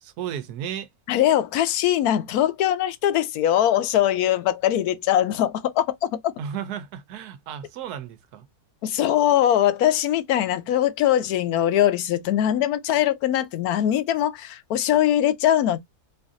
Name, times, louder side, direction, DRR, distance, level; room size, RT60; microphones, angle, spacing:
voice 1, 0.0-0.9 6.4-8.4, right 9 dB, 85° right, 1.2 m, -34 dB
voice 2, 1.1-6.3 8.8-15.8, left 11 dB, 75° left, 1.1 m, -21 dB
4.6 x 2.5 x 2.5 m
omnidirectional pair, 1.6 m